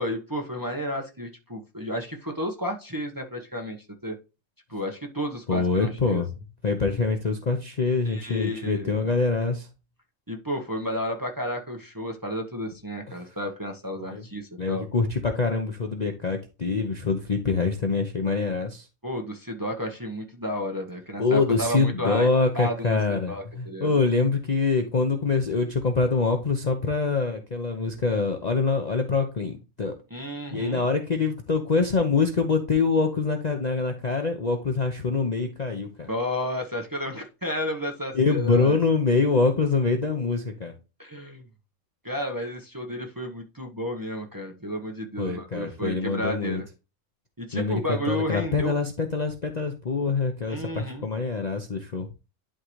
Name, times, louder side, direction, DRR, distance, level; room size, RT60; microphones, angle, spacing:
voice 1, 0.0-3.8 4.0-4.1 4.7-6.2 8.0-8.9 10.3-14.9 19.0-22.3 22.5-23.9 30.1-30.9 36.1-38.8 41.0-41.5 42.0-46.7 47.4-48.7 50.5-51.1, equal, 15° right, 1.0 m, -32 dB
voice 2, 5.5-6.3 6.6-9.7 14.0-14.2 14.6-18.8 21.2-29.9 30.5-36.1 38.1-40.7 45.2-46.6 47.5-52.1, left 4 dB, 40° left, 0.7 m, -25 dB
11.5 x 3.8 x 3.1 m
omnidirectional pair, 1.4 m